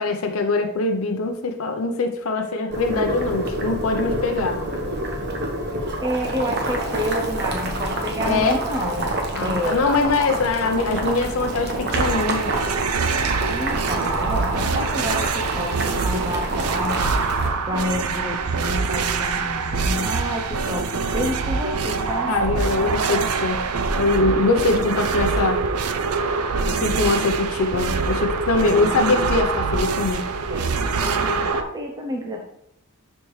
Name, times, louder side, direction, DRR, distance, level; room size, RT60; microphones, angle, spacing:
voice 1, 0.0-4.6 8.2-8.6 9.3-12.5 22.3-23.6 23.9-25.6 26.7-30.3, left 3 dB, 70° left, 4 dB, 0.7 m, -22 dB
Boiling, 2.7-17.5, right 1 dB, 50° right, 1.2 m, -27 dB
voice 2, 6.0-9.8 13.3-17.1 17.6-22.3 28.7-29.0 30.5-32.4, left 1 dB, 15° right, 1 dB, 0.7 m, -29 dB
sound 1, 11.9-31.6, right 4 dB, 90° right, 0.6 m, -24 dB
11.5 x 4.4 x 3.2 m, 0.77 s
head